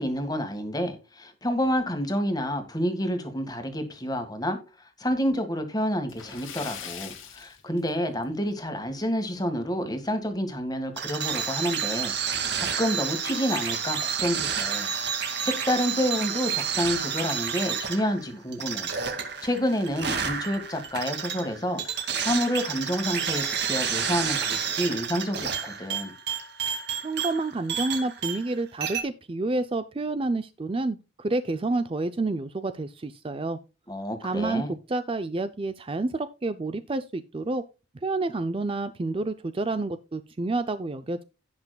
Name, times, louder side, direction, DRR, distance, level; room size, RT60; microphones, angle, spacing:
voice 1, 0.0-14.9 15.2-18.9 19.4-21.8 22.2-26.1 33.9-34.7, equal, 20° left, 1.7 m, -29 dB
Splash splatter, 6.0-8.4 8.7-8.9 9.3-9.4 10.9-11.0 11.3-11.4 12.0-12.3, left 8 dB, 85° left, 2.1 m, -41 dB
sound 1, 11.0-28.5 28.8-29.0, right 7 dB, 55° right, 2.1 m, -30 dB
voice 2, 27.0-33.6 34.2-37.6 38.0-41.2, right 2 dB, 25° right, 0.4 m, -29 dB
17.0 x 5.9 x 2.3 m
head